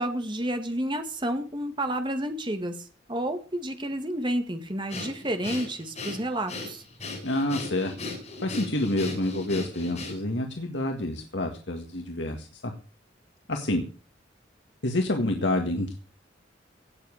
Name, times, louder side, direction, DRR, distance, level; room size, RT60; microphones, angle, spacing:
voice 1, 0.0-2.8 3.1-6.8, right 1 dB, 25° right, 7 dB, 2.1 m, -30 dB
Breathing, 4.9-10.4, left 3 dB, 40° left, 7.2 m, -37 dB
voice 2, 7.2-7.9 8.4-12.7 13.5-13.8 14.8-15.9, left 1 dB, 70° left, 4 dB, 2.0 m, -28 dB
17.5 x 7.4 x 6.6 m, 0.37 s
head